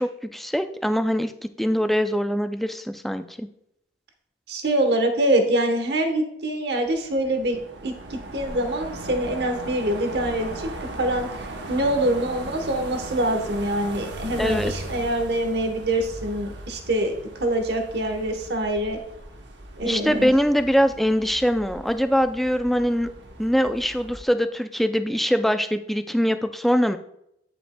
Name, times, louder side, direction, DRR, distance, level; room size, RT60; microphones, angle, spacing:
voice 1, 0.0-1.3 1.6-3.5 14.4-14.7 19.8-23.1 23.4-27.0, equal, ahead, 9 dB, 0.3 m, -23 dB
voice 2, 4.5-10.7 11.0-19.0 19.8-20.3, right 1 dB, 65° right, 5 dB, 1.1 m, -25 dB
sound 1, 6.9-24.2, right 1 dB, 90° right, 0.9 m, -38 dB
11.0 x 5.2 x 2.2 m, 0.78 s
head